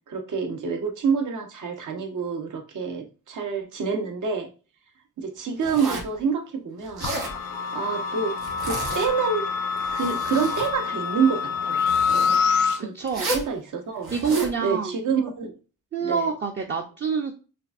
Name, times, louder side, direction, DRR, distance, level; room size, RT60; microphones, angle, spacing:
voice 1, 0.1-4.5 5.2-7.1 7.7-9.5 9.9-11.8 12.8-12.9 13.3-14.1 14.6-15.6 16.0-16.3, right 5 dB, 65° right, 4 dB, 1.0 m, -27 dB
Zipper (clothing), 5.6-6.2 6.8-7.4 8.4-9.1 9.7-10.7 11.8-12.4 13.1-13.5 14.0-14.6, right 3 dB, 90° right, 1.5 m, -31 dB
sound 1, 7.0-12.8, left 6 dB, 85° left, 0.9 m, -26 dB
Bowed string instrument, 7.0-12.0, left 7 dB, 55° left, 0.4 m, -42 dB
voice 2, 12.8-13.3 14.1-15.0 15.9-17.3, right 5 dB, 35° right, 3 dB, 0.6 m, -27 dB
5.7 x 2.6 x 2.5 m, 0.34 s
cardioid pair, 85°, 32 cm